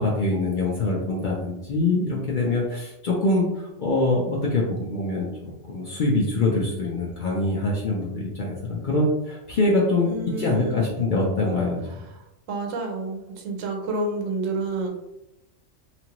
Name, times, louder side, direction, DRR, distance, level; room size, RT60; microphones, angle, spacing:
voice 1, 0.0-11.8, left 2 dB, 55° left, -3 dB, 0.6 m, -24 dB
voice 2, 10.0-10.9 12.5-14.9, right 2 dB, 80° right, 1 dB, 1.0 m, -29 dB
2.9 x 2.5 x 2.9 m, 0.90 s
omnidirectional pair, 1.3 m